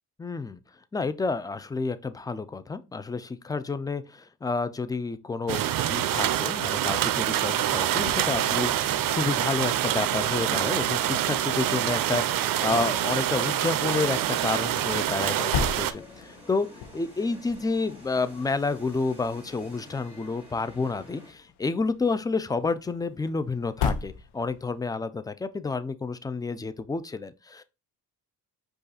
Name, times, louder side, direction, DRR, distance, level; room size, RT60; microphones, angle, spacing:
voice 1, 0.2-0.6 0.9-16.7 16.9-27.6, left 4 dB, 10° left, 0.3 m, -30 dB
sound 1, 5.5-15.9, right 12 dB, 60° right, 0.5 m, -26 dB
sound 2, 6.8-24.9, left 6 dB, 85° left, 0.8 m, -40 dB
sound 3, 10.4-21.3, left 2 dB, 5° right, 2.1 m, -49 dB
5.3 x 2.5 x 4.0 m
cardioid pair, 90°, 38 cm